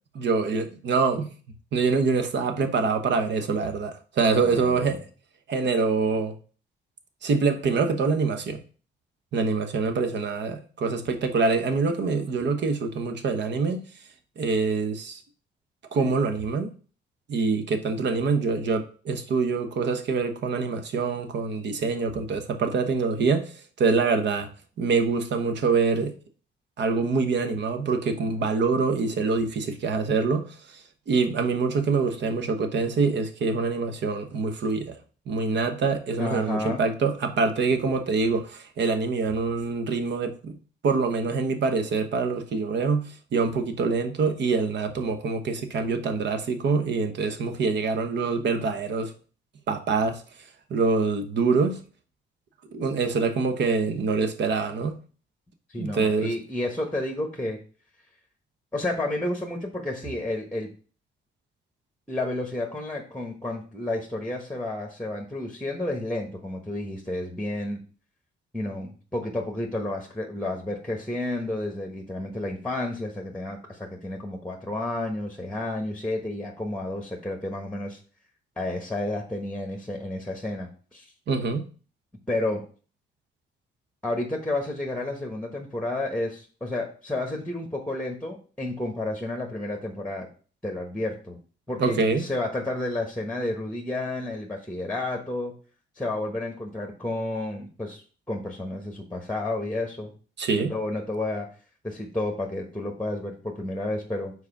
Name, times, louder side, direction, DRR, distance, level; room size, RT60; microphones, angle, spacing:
voice 1, 0.1-1.3 1.7-5.0 5.5-6.3 7.2-8.6 9.3-13.8 14.4-15.2 15.9-16.7 17.3-24.5 24.8-26.1 26.8-30.6 31.1-35.0 35.3-40.6 40.8-49.1 49.7-50.2 50.7-51.8 52.7-55.0 55.8-56.3 81.3-81.7 91.8-92.2 100.4-100.7, right 4 dB, 60° right, 1.1 m, -25 dB
voice 2, 4.4-5.0 36.2-36.8 55.7-57.6 58.7-60.7 62.1-67.8 68.5-78.0 78.6-81.1 82.3-82.6 84.0-90.3 90.6-91.4 91.7-95.5 96.0-100.1 100.5-101.5 101.8-104.3, left 2 dB, 5° left, 1.2 m, -31 dB
4.8 x 4.1 x 5.9 m
cardioid pair, 90°, 20 cm